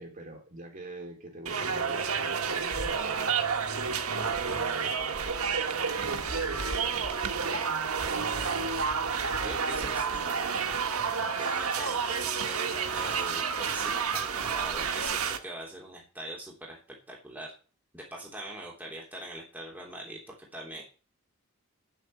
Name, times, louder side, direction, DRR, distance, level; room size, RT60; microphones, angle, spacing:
voice 1, 0.0-8.4 10.9-11.3, right 2 dB, 40° right, 2 dB, 3.8 m, -47 dB
sound 1, 1.5-15.4, right 6 dB, 80° right, 1.4 m, -30 dB
voice 2, 9.4-10.8 11.4-16.8 17.1-17.5 17.9-20.8, right 1 dB, 10° right, -2 dB, 3.2 m, -42 dB
8.2 x 7.9 x 8.8 m, 0.35 s
head